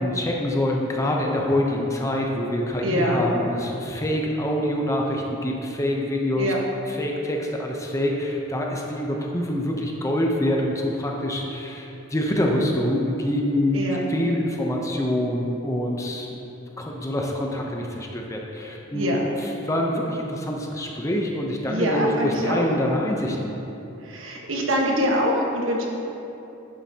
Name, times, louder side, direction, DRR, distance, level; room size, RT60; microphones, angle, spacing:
voice 1, 0.0-6.5 6.9-13.8 14.1-16.5 16.8-23.5, left 1 dB, 15° left, -1 dB, 0.6 m, -25 dB
voice 2, 2.8-3.2 6.4-6.6 13.7-14.0 18.9-19.2 21.7-22.6 24.0-25.9, equal, 70° right, -1 dB, 1.3 m, -24 dB
10.5 x 7.8 x 2.8 m, 3.0 s
head